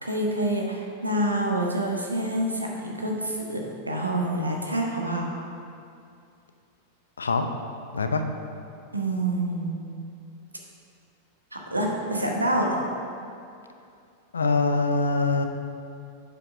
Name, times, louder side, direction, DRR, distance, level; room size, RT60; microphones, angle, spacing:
voice 1, 0.0-3.6 3.9-5.3 8.9-10.0 11.5-12.7, right 1 dB, 85° right, 0 dB, 1.1 m, -27 dB
voice 2, 14.3-15.5, left 3 dB, 75° left, 6 dB, 0.5 m, -23 dB
7.7 x 5.9 x 4.9 m, 2.4 s
figure-of-eight pair, 90°, 0 cm